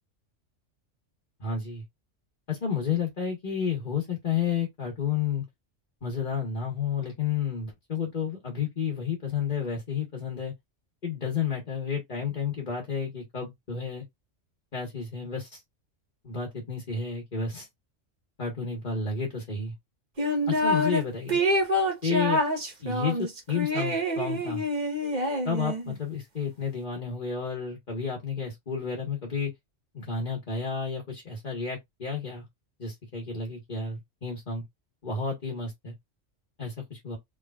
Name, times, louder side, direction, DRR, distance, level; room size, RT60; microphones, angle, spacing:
voice 1, 1.4-1.8 2.5-5.4 6.0-10.5 11.0-14.0 14.7-15.6 16.2-17.7 18.4-19.7 20.5-21.4 22.0-22.4 22.8-24.6 25.4-29.5 29.9-32.4 32.8-34.6 35.0-35.9 36.6-37.2, left 6 dB, 40° left, 1.3 m, -31 dB
sound 1, 20.2-21.0 21.3-25.9, equal, 40° right, 1.1 m, -26 dB
3.7 x 3.3 x 2.3 m
omnidirectional pair, 1.3 m